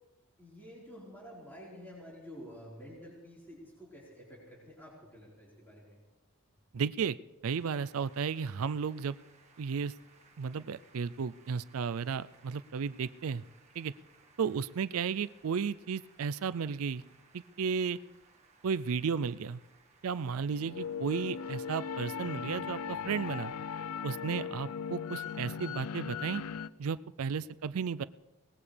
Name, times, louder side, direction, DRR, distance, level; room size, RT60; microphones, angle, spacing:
voice 1, 0.4-6.0 27.4-27.5, equal, 10° left, -7 dB, 4.5 m, -50 dB
voice 2, 6.7-7.2 7.4-9.2 9.6-9.9 10.4-13.4 13.8-13.9 14.4-17.0 17.3-18.0 18.6-19.6 20.0-23.5 24.0-26.4 26.8-28.0, right 6 dB, 70° right, 16 dB, 0.4 m, -34 dB
sound 1, 7.5-24.1, right 4 dB, 30° right, 1.6 m, -64 dB
sound 2, 20.4-26.7, left 6 dB, 80° left, 0.5 m, -38 dB
21.5 x 19.5 x 3.4 m, 1.1 s
head